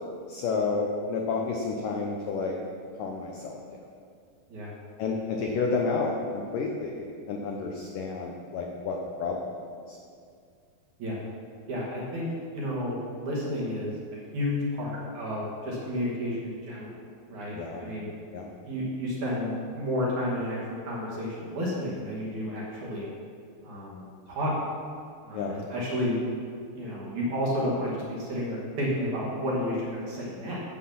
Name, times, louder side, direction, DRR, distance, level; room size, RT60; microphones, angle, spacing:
voice 1, 0.3-2.6 3.0-3.6 5.0-9.5 9.9-10.0 17.5-17.9 18.3-18.5 25.3-25.6, left 4 dB, 80° left, 0 dB, 1.9 m, -30 dB
voice 2, 11.7-13.9 14.3-16.9 17.3-18.1 18.6-23.1 23.6-24.5 25.2-26.2 26.7-30.6, left 1 dB, 50° right, -5 dB, 3.2 m, -31 dB
12.5 x 7.7 x 5.9 m, 2.3 s
omnidirectional pair, 5.1 m